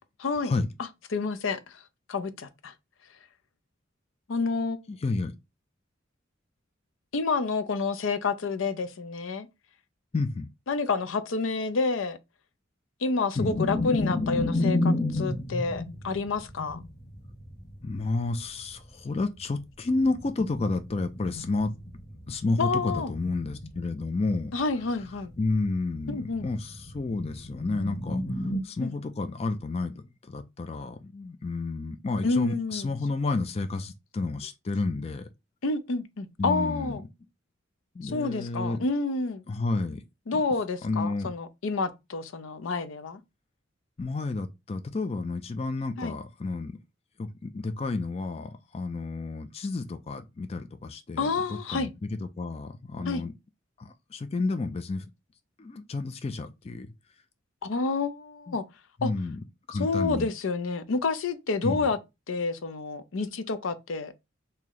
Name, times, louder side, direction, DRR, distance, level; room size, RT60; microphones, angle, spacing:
voice 1, 0.2-0.5 1.1-1.8 2.1-2.7 4.3-4.8 7.1-9.5 10.7-12.2 13.0-16.8 22.6-23.1 24.5-25.3 26.1-26.5 28.8-28.9 32.2-32.9 35.6-37.0 38.0-39.4 40.3-43.2 46.0-46.1 51.2-51.9 53.1-53.2 57.6-58.6 59.0-59.1 59.8-62.0 62.3-64.1, left 4 dB, 85° left, 0.5 m, -29 dB
voice 2, 4.9-5.3 10.1-10.5 13.4-13.5 17.8-21.7 22.3-24.5 25.4-35.3 36.4-37.0 38.0-38.8 39.5-40.0 40.3-40.4 40.8-41.3 44.0-46.8 47.2-51.9 52.4-53.3 53.8-55.1 55.6-56.9 58.5-58.6 59.0-59.4 59.7-60.3 61.6-61.9, left 3 dB, 30° left, 0.4 m, -31 dB
sound 1, 13.4-18.6 19.9-24.0 24.4-24.5 24.8-28.6, left 2 dB, 55° left, 1.3 m, -31 dB
3.0 x 2.7 x 3.8 m
head